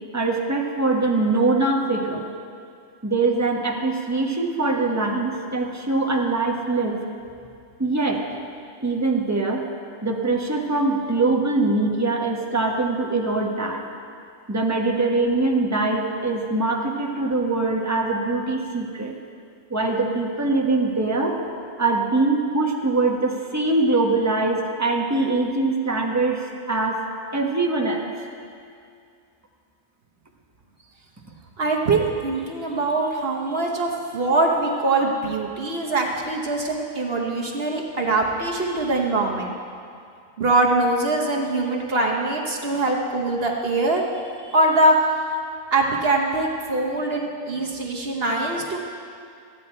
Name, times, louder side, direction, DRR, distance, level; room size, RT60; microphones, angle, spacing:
voice 1, 0.1-2.3 3.0-7.0 7.8-8.2 8.8-9.6 10.0-13.8 14.5-19.1 19.7-21.4 21.8-27.0 27.3-28.1, right 3 dB, 15° right, 0 dB, 0.9 m, -23 dB
voice 2, 31.6-39.5 40.4-44.1 44.4-45.0 45.3-45.4 45.7-48.8, right 2 dB, 50° right, 0 dB, 1.1 m, -23 dB
14.5 x 9.6 x 4.4 m, 2.4 s
omnidirectional pair, 1.4 m